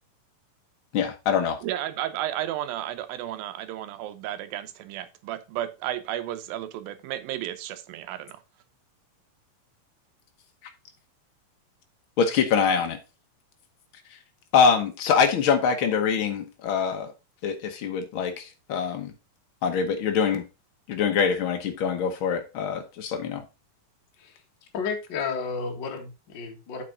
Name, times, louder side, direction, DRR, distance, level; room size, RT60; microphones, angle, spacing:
voice 1, 0.9-1.6 12.2-13.0 14.5-17.1 17.4-19.1 19.6-20.4 20.9-23.4, left 6 dB, 70° left, 6 dB, 1.2 m, -24 dB
voice 2, 1.6-8.4, right 12 dB, 90° right, 11 dB, 2.7 m, -33 dB
voice 3, 24.7-26.8, left 5 dB, 45° left, 2 dB, 1.7 m, -32 dB
8.6 x 5.9 x 3.8 m, 0.27 s
omnidirectional pair, 4.0 m